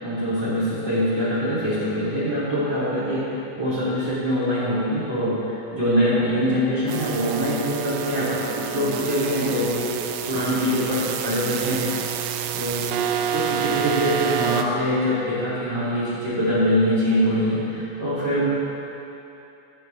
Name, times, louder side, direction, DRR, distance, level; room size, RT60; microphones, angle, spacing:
voice 1, 0.0-11.8 12.5-13.0 13.3-18.5, equal, 30° right, -10 dB, 2.4 m, -24 dB
sound 1, 6.9-14.6, right 8 dB, 85° right, 3.0 m, -28 dB
21.0 x 7.5 x 3.3 m, 2.9 s
omnidirectional pair, 5.3 m